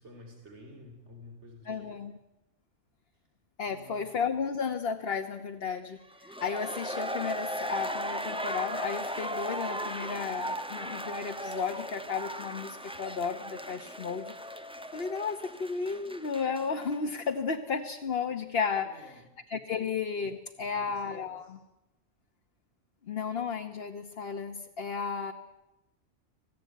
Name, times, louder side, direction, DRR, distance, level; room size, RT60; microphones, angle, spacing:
voice 1, 0.0-2.0 3.6-4.0 18.8-19.3 19.7-19.9 20.6-21.6, left 1 dB, 65° right, 3 dB, 4.0 m, -51 dB
voice 2, 1.7-2.1 3.6-6.0 6.2-14.3 14.9-18.9 19.5-21.6 23.1-25.3, left 5 dB, 55° left, 5 dB, 1.3 m, -33 dB
sound 1, 6.1-17.0 17.3-17.4, equal, 5° right, 1.1 m, -37 dB
26.5 x 17.5 x 9.3 m, 0.95 s
omnidirectional pair, 1.2 m